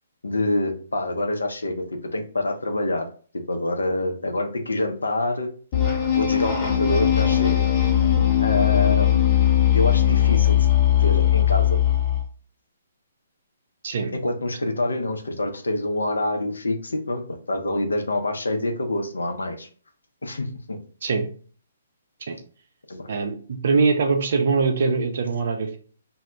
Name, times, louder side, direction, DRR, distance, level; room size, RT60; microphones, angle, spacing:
voice 1, 0.2-1.8 2.1-3.0 3.5-5.5 6.1-7.6 8.4-9.5 9.7-10.7 11.0-11.8 14.2-19.7 20.2-20.8 22.9-23.1, left 2 dB, 75° left, 5 dB, 0.5 m, -26 dB
sound 1, 5.7-12.2, left 11 dB, 35° left, 0.8 m, -19 dB
voice 2, 23.1-25.8, right 4 dB, 55° right, 5 dB, 0.5 m, -23 dB
2.1 x 2.1 x 3.6 m, 0.42 s
figure-of-eight pair, 130°, 0 cm